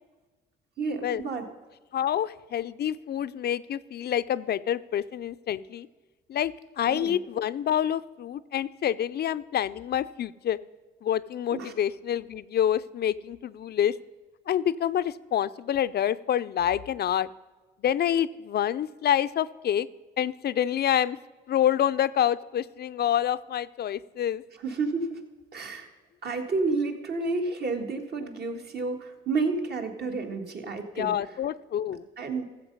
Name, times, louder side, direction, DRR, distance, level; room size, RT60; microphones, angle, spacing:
voice 1, 0.8-1.5 6.9-7.2 11.5-11.7 24.6-25.2 25.5-25.9 26.2-31.1 32.2-32.5, right 3 dB, 55° right, 4 dB, 1.9 m, -30 dB
voice 2, 1.9-5.9 6.3-10.6 11.0-14.0 14.5-17.3 17.8-19.9 20.2-21.2 21.5-24.4 31.0-32.0, left 10 dB, 55° left, 15 dB, 0.5 m, -27 dB
14.5 x 7.7 x 5.4 m, 1.3 s
cardioid pair, 90°, 20 cm